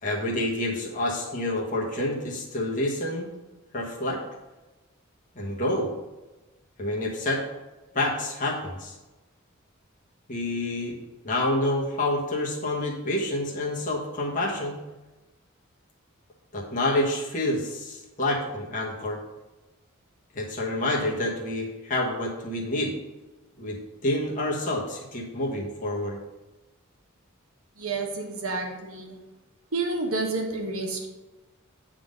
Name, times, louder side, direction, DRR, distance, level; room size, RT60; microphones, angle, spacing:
voice 1, 0.0-3.3 3.7-4.2 5.3-5.9 6.8-7.4 7.9-8.9 10.3-11.0 11.2-14.8 16.5-19.2 20.3-22.9 23.6-23.8 24.0-26.2, left 1 dB, 40° left, -3 dB, 1.3 m, -28 dB
voice 2, 27.8-29.2 29.7-31.1, right 3 dB, 80° right, 2 dB, 1.4 m, -30 dB
8.7 x 3.8 x 5.2 m, 1.1 s
head